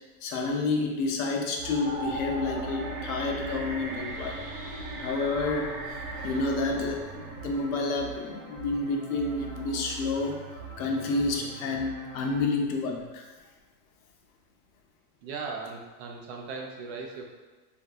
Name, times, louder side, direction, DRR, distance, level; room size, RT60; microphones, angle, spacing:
voice 1, 0.2-4.4 5.0-10.4 10.8-13.2, left 3 dB, 65° left, 1 dB, 0.6 m, -29 dB
sound 1, 1.6-12.4, right 5 dB, 20° right, 0.9 m, -43 dB
sound 2, 1.6-8.7, right 2 dB, 85° right, 0.8 m, -39 dB
voice 2, 15.2-17.2, right 4 dB, 50° right, 0 dB, 0.4 m, -38 dB
3.4 x 2.6 x 2.3 m, 1.3 s
supercardioid pair, 170°, 46 cm